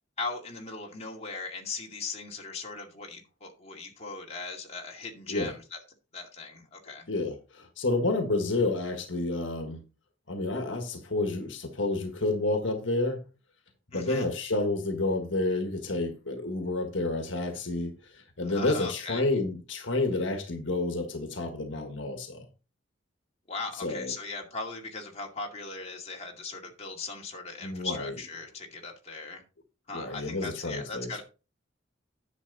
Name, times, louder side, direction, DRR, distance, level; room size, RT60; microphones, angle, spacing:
voice 1, 0.2-5.8 6.1-7.1 13.9-14.3 18.5-19.2 23.5-29.4 29.9-31.2, left 3 dB, 35° left, 2.3 m, -39 dB
voice 2, 7.1-9.8 10.3-13.2 13.9-22.4 23.8-24.1 27.6-28.1 29.9-31.2, left 2 dB, 70° left, 1.5 m, -30 dB
10.0 x 7.2 x 4.0 m
head